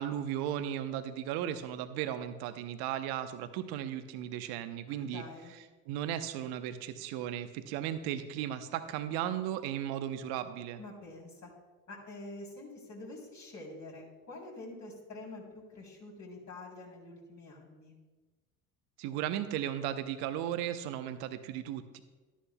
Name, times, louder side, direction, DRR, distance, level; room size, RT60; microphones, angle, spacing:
voice 1, 0.0-5.2 5.9-10.8 19.0-22.0, right 11 dB, 65° right, 10 dB, 0.8 m, -36 dB
voice 2, 4.9-5.5 10.8-11.5 11.9-17.9, left 2 dB, 40° left, -2 dB, 3.4 m, -47 dB
12.5 x 10.0 x 2.3 m, 1.2 s
hypercardioid pair, 65°, 42 cm